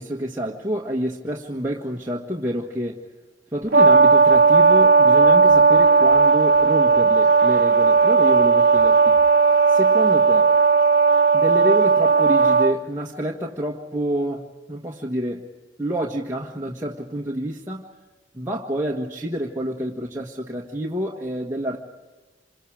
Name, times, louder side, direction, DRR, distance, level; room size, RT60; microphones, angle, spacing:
voice 1, 0.0-3.0 3.5-9.2 9.7-10.5 11.3-15.5 15.8-17.9 18.3-21.8, right 1 dB, 15° right, -2 dB, 1.7 m, -28 dB
Brass instrument, 3.7-12.7, right 4 dB, 55° right, 1.1 m, -15 dB
28.0 x 27.0 x 5.0 m, 1.2 s
head